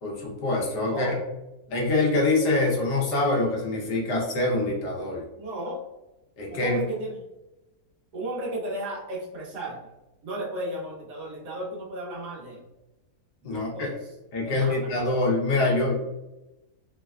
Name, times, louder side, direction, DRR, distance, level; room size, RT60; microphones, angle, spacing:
voice 1, 0.0-1.1 1.7-5.2 6.4-6.8 13.4-13.9 14.3-16.0, left 2 dB, 85° left, -3 dB, 1.5 m, -25 dB
voice 2, 0.9-1.2 5.4-5.8 6.5-7.2 8.1-9.8 10.2-12.6 13.4-14.2 14.4-14.9, right 1 dB, 90° right, -3 dB, 1.5 m, -34 dB
3.9 x 2.1 x 2.4 m, 0.99 s
omnidirectional pair, 1.7 m